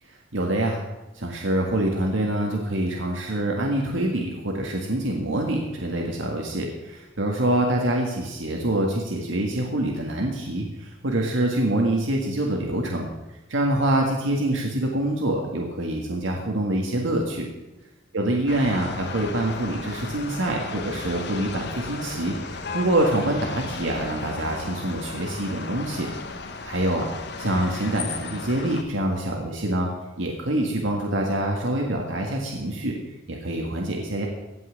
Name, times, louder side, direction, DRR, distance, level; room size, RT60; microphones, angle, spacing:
voice 1, 0.3-0.8 1.1-13.1 13.5-17.5 18.1-26.1 26.6-27.1 27.4-29.9 30.2-33.0 33.3-34.3, right 1 dB, 85° right, 0 dB, 1.8 m, -25 dB
sound 1, 18.5-28.8, left 4 dB, 60° left, 1.2 m, -35 dB
16.5 x 5.7 x 8.5 m, 1.0 s
head